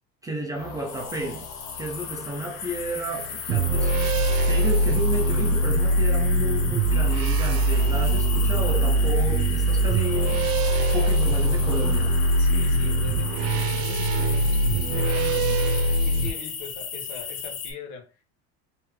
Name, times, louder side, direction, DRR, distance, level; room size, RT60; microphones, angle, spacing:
voice 1, 0.2-1.5 1.8-4.0 4.4-10.5 10.9-12.2, right 1 dB, 10° right, 0.5 m, -32 dB
sound 1, 0.5-14.0, left 5 dB, 40° left, 0.9 m, -43 dB
sound 2, 0.9-17.7, left 6 dB, 85° left, 1.3 m, -36 dB
sound 3, 3.5-16.3, right 1 dB, 70° right, 0.8 m, -22 dB
voice 2, 12.4-18.2, left 5 dB, 60° left, 1.4 m, -41 dB
3.3 x 3.3 x 3.3 m
cardioid pair, 150°, 32 cm